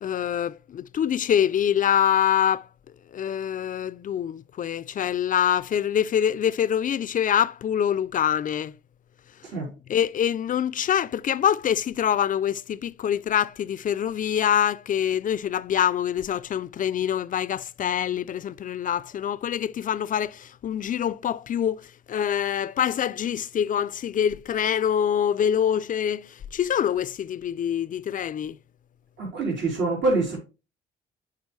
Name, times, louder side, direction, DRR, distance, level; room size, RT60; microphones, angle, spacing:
voice 1, 0.0-2.7 3.1-8.7 9.9-28.6, left 9 dB, 40° left, 0.4 m, -25 dB
voice 2, 29.2-30.4, right 3 dB, 65° right, 3.2 m, -25 dB
8.1 x 4.7 x 3.2 m
cardioid pair, 90°, 20 cm